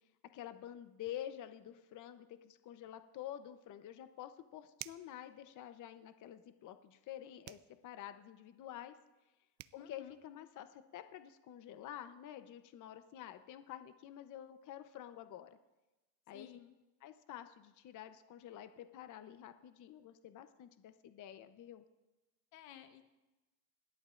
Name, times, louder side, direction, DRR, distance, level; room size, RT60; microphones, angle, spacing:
voice 1, 0.3-8.9 9.7-15.5 16.3-16.6 17.0-21.8, left 11 dB, 40° left, 9 dB, 0.9 m, -49 dB
sound 1, 4.7-5.2 7.4-7.7 9.2-9.3 9.6-9.8, right 19 dB, 60° right, 0.6 m, -49 dB
voice 2, 9.8-10.1 16.3-16.7 22.5-23.0, left 11 dB, 80° left, 7 dB, 1.4 m, -54 dB
27.5 x 11.5 x 2.6 m, 1.1 s
supercardioid pair, 115°, 45 cm